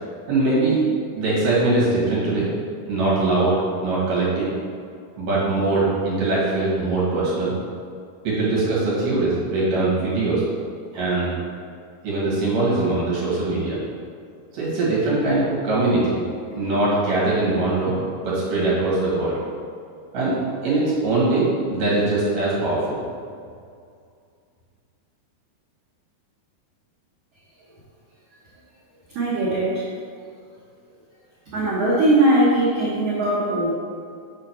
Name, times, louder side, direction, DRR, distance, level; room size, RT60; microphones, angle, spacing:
voice 1, 0.3-0.9 1.2-2.5 2.9-4.5 5.2-7.5 8.2-10.4 10.9-11.3 12.0-13.8 14.5-16.2 16.5-18.0 18.2-19.4 20.1-20.4 20.6-23.0, right 2 dB, 60° right, -7 dB, 3.0 m, -21 dB
voice 2, 29.1-29.8 31.5-33.7, right 1 dB, 80° right, -7 dB, 1.4 m, -20 dB
7.1 x 3.8 x 5.8 m, 2.3 s
omnidirectional pair, 4.7 m